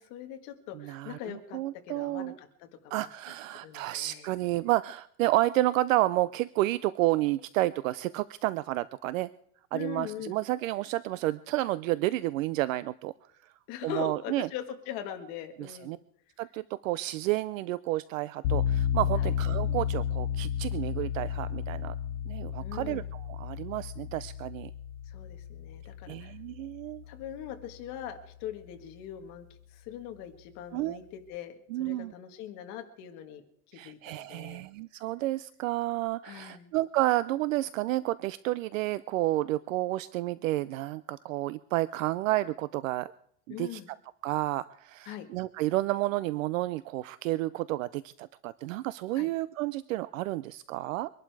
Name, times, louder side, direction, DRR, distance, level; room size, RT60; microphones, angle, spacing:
voice 1, 0.0-1.6 1.8-3.1 3.6-4.3 9.7-10.4 13.7-16.0 19.2-19.3 22.6-23.1 25.1-26.3 27.1-33.4 33.7-34.6 36.2-36.7 43.5-43.9 45.1-45.3 49.2-49.3, left 10 dB, 35° left, 7 dB, 1.6 m, -41 dB
voice 2, 0.7-2.3 2.9-9.3 9.7-13.1 13.8-14.5 15.7-16.0 16.4-21.9 22.3-24.7 26.1-27.0 30.7-31.0 31.7-32.1 33.7-43.1 43.5-43.8 44.2-51.1, right 17 dB, 60° right, 17 dB, 0.5 m, -30 dB
sound 1, 18.4-27.3, left 9 dB, 80° left, 2.4 m, -32 dB
24.0 x 11.5 x 4.7 m, 0.67 s
supercardioid pair, 175°, 46 cm